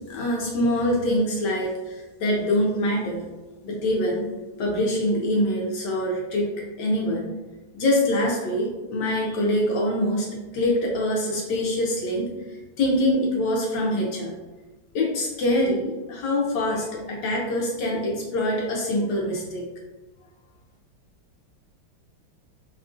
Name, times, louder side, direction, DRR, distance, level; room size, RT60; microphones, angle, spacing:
voice 1, 0.1-3.2 3.6-4.2 4.6-6.5 6.8-7.3 7.7-10.3 10.5-12.3 12.8-14.3 14.9-19.7, left 1 dB, 75° left, -2 dB, 1.0 m, -24 dB
3.5 x 2.4 x 2.4 m, 1.2 s
omnidirectional pair, 2.3 m